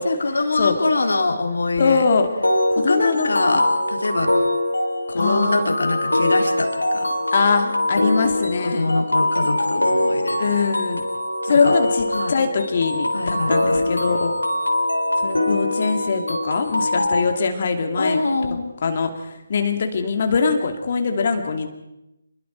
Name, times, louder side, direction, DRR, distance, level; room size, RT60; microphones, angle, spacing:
voice 1, 0.0-2.0 2.9-4.3 5.1-7.1 8.6-10.6 11.5-11.7 12.1-12.3 13.1-13.9 18.0-18.7, left 3 dB, 60° left, 5 dB, 3.3 m, -24 dB
voice 2, 1.8-2.3 2.8-3.6 5.2-5.7 7.3-8.9 10.4-11.0 11.4-14.3 15.2-18.2 18.8-19.1 19.5-21.7, left 5 dB, 40° left, 5 dB, 2.6 m, -22 dB
sound 1, 2.4-17.2, left 1 dB, 75° left, 3.5 m, -22 dB
29.0 x 22.0 x 4.6 m, 0.89 s
figure-of-eight pair, 145°, 0 cm